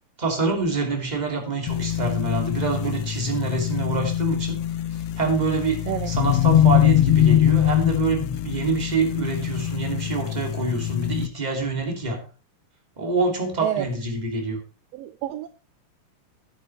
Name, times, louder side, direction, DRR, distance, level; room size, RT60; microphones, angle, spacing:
voice 1, 0.2-4.6 4.9-12.2 13.0-14.6, right 3 dB, 15° right, 2 dB, 2.2 m, -26 dB
sound 1, 1.7-11.3, left 11 dB, 75° left, 1.4 m, -23 dB
voice 2, 15.0-15.5, right 13 dB, 80° right, 12 dB, 1.5 m, -27 dB
10.0 x 9.5 x 4.3 m, 0.36 s
omnidirectional pair, 3.5 m